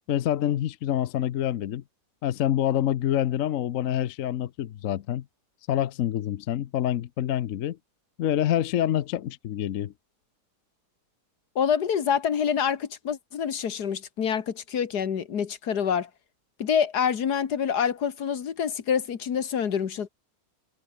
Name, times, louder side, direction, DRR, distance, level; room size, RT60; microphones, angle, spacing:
voice 1, 0.1-1.8 2.2-5.2 5.7-7.8 8.2-9.9, left 11 dB, 60° left, 1.0 m, -26 dB
voice 2, 11.6-16.1 16.6-20.1, left 7 dB, 80° left, 2.0 m, -26 dB
omnidirectional pair, 1.7 m